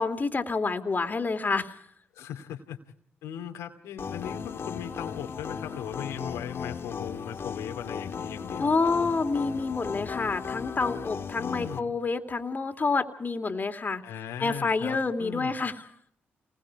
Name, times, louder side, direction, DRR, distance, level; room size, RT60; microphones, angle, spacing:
voice 1, 0.0-1.8 8.6-14.0 14.4-15.8, left 4 dB, 40° left, 6 dB, 2.9 m, -28 dB
voice 2, 2.1-2.8 3.2-9.2 11.4-11.9 14.0-15.5, left 9 dB, 90° left, 3 dB, 2.6 m, -38 dB
sound 1, 4.0-11.8, left 6 dB, 60° left, 1.6 m, -36 dB
28.5 x 20.5 x 4.8 m, 0.66 s
supercardioid pair, 50°, 5 cm